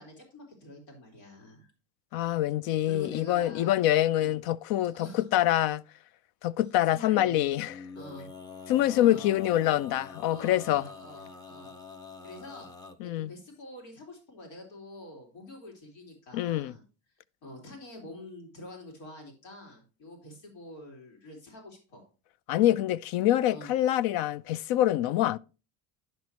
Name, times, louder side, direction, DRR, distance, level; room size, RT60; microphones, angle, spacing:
voice 1, 0.0-1.7 2.9-3.8 4.9-5.3 6.9-7.4 7.9-8.3 9.0-9.2 10.3-11.7 12.2-12.7 13.0-16.8 17.4-22.0 23.5-23.7, left 1 dB, 85° left, 3.2 m, -46 dB
voice 2, 2.1-5.8 6.4-7.7 8.7-10.9 13.0-13.3 16.3-16.7 22.5-25.4, left 13 dB, 60° left, 0.5 m, -25 dB
Male singing, 7.6-13.0, left 5 dB, 10° left, 0.6 m, -46 dB
10.5 x 6.0 x 2.9 m
cardioid pair, 125°, 42 cm